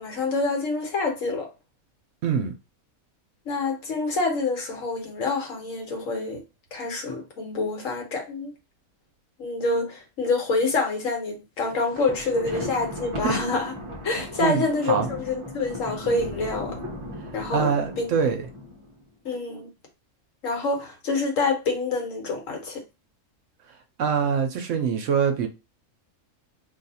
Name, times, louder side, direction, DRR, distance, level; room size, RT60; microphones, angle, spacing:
voice 1, 0.0-1.5 3.5-6.4 6.7-8.5 9.4-13.7 14.0-16.8 17.3-18.1 19.2-19.7 20.4-22.8, left 3 dB, 65° left, 1.3 m, -27 dB
voice 2, 2.2-2.5 13.2-13.3 14.4-15.1 17.5-18.5 24.0-25.5, right 6 dB, 65° right, 0.9 m, -24 dB
Thunder, 11.8-19.0, left 1 dB, 35° right, 0.5 m, -36 dB
2.6 x 2.4 x 4.1 m
omnidirectional pair, 1.5 m